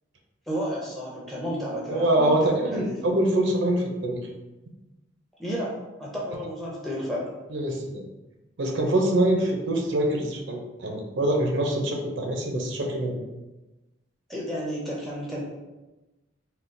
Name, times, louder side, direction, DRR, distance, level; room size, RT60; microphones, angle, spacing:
voice 1, 0.5-3.0 5.4-5.7 6.0-7.3 14.3-15.4, equal, ahead, -5 dB, 0.5 m, -31 dB
voice 2, 1.9-4.2 7.5-8.0 8.6-13.2, right 1 dB, 70° right, 1 dB, 0.5 m, -24 dB
3.7 x 2.3 x 2.5 m, 1.1 s
head